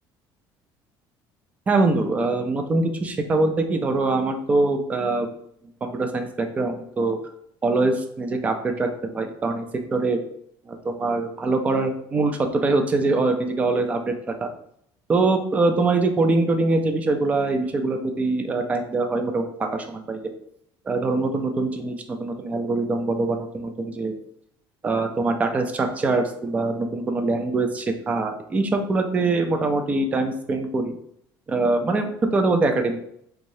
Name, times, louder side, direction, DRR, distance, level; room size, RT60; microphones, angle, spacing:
voice 1, 1.7-5.3 5.8-7.2 7.6-10.2 10.7-14.1 14.4-14.5 15.1-20.2 20.9-24.1 24.8-31.0 31.5-33.1, right 3 dB, 15° right, 5 dB, 0.4 m, -23 dB
3.5 x 2.7 x 3.1 m, 0.71 s
cardioid pair, 175°, 8 cm